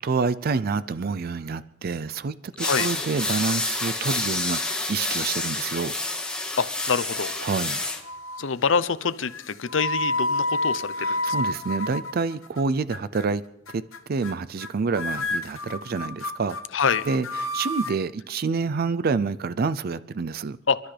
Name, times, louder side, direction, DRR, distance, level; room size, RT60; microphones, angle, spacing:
voice 1, 0.0-5.9 7.4-7.8 11.0-13.4 13.7-13.8 14.1-16.6 17.1-20.6, right 4 dB, 50° right, 15 dB, 0.4 m, -27 dB
sound 1, 2.6-8.0, left 2 dB, 5° left, 1.5 m, -28 dB
voice 2, 6.6-7.3 8.4-11.4 16.7-17.0 20.7-20.8, left 5 dB, 70° left, 14 dB, 0.7 m, -25 dB
sound 2, 7.1-7.7 8.0-8.5 9.3-12.6 12.9-13.3 13.7-14.0 14.2-14.7 15.0-18.0, left 1 dB, 85° left, 1.0 m, -30 dB
29.0 x 12.0 x 3.4 m, 0.86 s
head